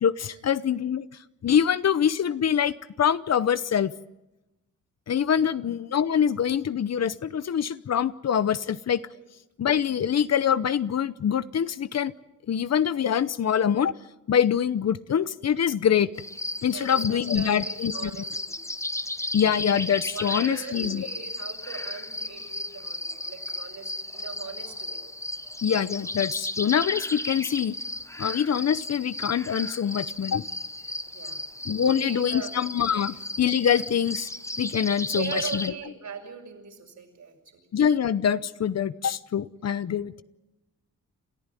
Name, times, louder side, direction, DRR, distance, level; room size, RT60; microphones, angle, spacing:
voice 1, 0.0-1.1 1.4-3.9 5.1-9.0 9.6-12.1 12.5-13.9 14.3-16.1 16.6-18.1 19.3-21.1 25.6-27.7 28.2-30.4 31.6-34.3 34.6-35.7 37.7-40.2, left 8 dB, 55° left, 16 dB, 0.8 m, -24 dB
sound 1, 16.1-35.7, left 1 dB, 10° left, 0.9 m, -34 dB
voice 2, 16.7-18.6 20.1-25.0 31.1-31.4 31.8-32.5 32.9-33.0 35.1-37.3, right 6 dB, 70° right, 2 dB, 6.1 m, -39 dB
28.0 x 14.5 x 9.9 m, 0.99 s
wide cardioid pair, 105°, 30 cm